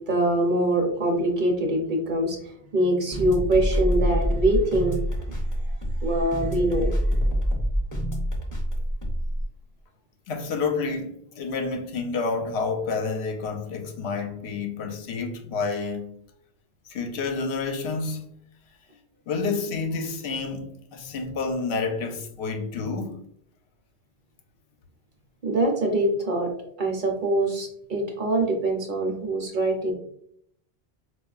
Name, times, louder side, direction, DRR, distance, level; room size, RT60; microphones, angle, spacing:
voice 1, 0.1-5.0 5.2-5.3 6.0-6.9 25.4-26.5 26.8-29.9, right 1 dB, 55° right, 0.7 m, -24 dB
sound 1, 3.1-9.4, equal, 20° left, 0.5 m, -26 dB
voice 2, 10.3-16.1 16.9-18.3 19.3-23.1, left 4 dB, 80° left, 0.8 m, -29 dB
4.4 x 2.3 x 2.3 m
omnidirectional pair, 1.1 m